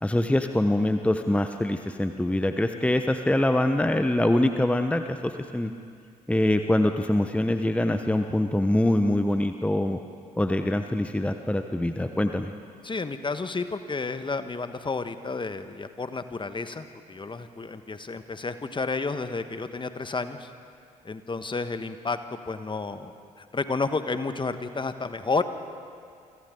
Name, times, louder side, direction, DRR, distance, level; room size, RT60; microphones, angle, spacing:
voice 1, 0.0-5.7 6.3-10.0 10.4-12.5, left 1 dB, 5° left, 7 dB, 1.1 m, -24 dB
voice 2, 12.8-20.5 21.0-22.2 22.5-25.4, left 3 dB, 25° left, 9 dB, 1.5 m, -31 dB
28.0 x 25.5 x 3.9 m, 2.3 s
figure-of-eight pair, 45°, 19 cm